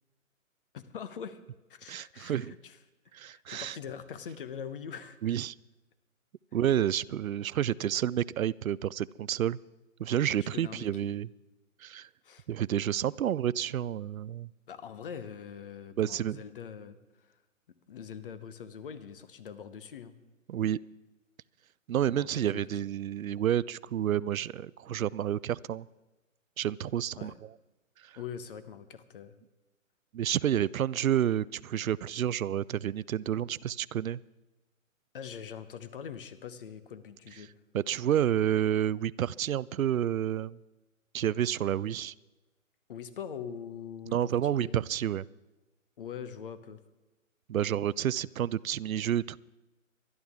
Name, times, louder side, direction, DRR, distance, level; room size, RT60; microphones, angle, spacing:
voice 1, 0.7-1.4 1.7-2.8 3.3-5.4 10.4-11.2 12.2-12.5 14.7-17.4 17.9-20.1 22.0-22.3 27.2-27.3 28.2-29.4 35.1-37.5 42.9-44.8 46.0-46.8, left 7 dB, 40° left, 14 dB, 1.0 m, -43 dB
voice 2, 1.9-2.5 3.1-3.8 5.2-5.5 6.5-9.6 10.0-11.3 11.8-12.1 12.5-14.5 16.0-16.4 20.5-20.8 21.9-25.9 26.6-27.5 28.0-28.2 30.1-34.2 37.7-40.6 41.1-42.1 44.1-45.3 47.5-49.4, right 10 dB, 85° right, 21 dB, 0.5 m, -30 dB
24.5 x 11.5 x 3.6 m, 1.1 s
hypercardioid pair, 145°, 40 cm